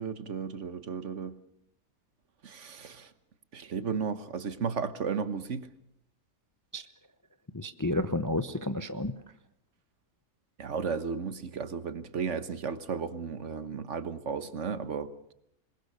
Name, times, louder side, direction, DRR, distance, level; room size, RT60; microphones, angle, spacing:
voice 1, 0.0-1.3 2.4-3.1 3.5-5.7 10.6-15.1, right 6 dB, 55° right, 14 dB, 1.4 m, -34 dB
voice 2, 7.5-9.2, left 1 dB, 20° left, 11 dB, 0.6 m, -31 dB
26.0 x 21.0 x 6.6 m, 0.73 s
omnidirectional pair, 1.5 m